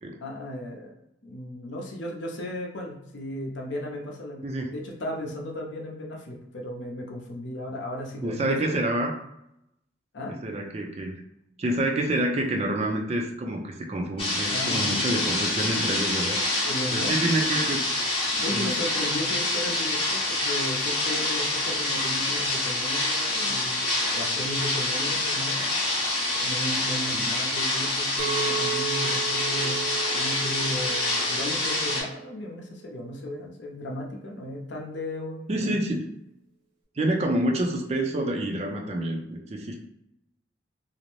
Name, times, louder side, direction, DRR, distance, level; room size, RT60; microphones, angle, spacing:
voice 1, 0.2-0.9 1.2-8.8 10.1-10.4 14.5-15.2 16.6-17.6 18.4-23.8 24.1-25.6 26.4-29.8 30.1-35.7, left 1 dB, 65° left, 0 dB, 0.6 m, -35 dB
voice 2, 8.2-9.1 10.4-11.2 11.6-16.4 16.9-17.8 18.5-18.7 27.1-27.3 35.5-36.0 37.0-39.8, right 1 dB, 35° right, 2 dB, 0.4 m, -27 dB
sound 1, 14.2-32.0, left 2 dB, 30° left, 0.7 m, -26 dB
Chink clink, 28.2-32.5 33.0-33.4, right 9 dB, 80° right, 0.8 m, -35 dB
2.6 x 2.0 x 3.0 m, 0.81 s
head